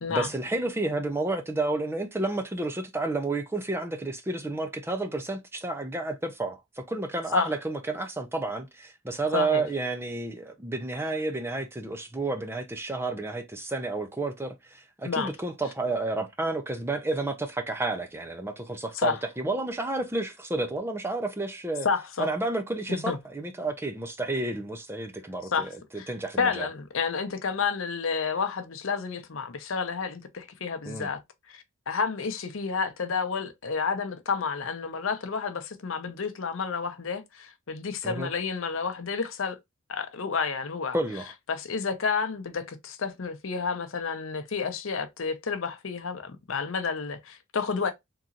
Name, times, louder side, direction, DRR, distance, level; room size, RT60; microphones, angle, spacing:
voice 1, 0.1-21.9 22.2-26.7 30.8-31.1 38.0-38.3 40.9-41.3, right 2 dB, 10° right, 0.5 m, -31 dB
voice 2, 9.3-9.6 15.0-15.3 18.9-19.2 21.8-22.3 22.9-23.2 25.5-25.7 25.9-26.1 26.4-31.2 31.5-39.6 39.9-41.0 41.5-47.9, left 5 dB, 70° left, 0.7 m, -30 dB
3.8 x 2.9 x 2.5 m
head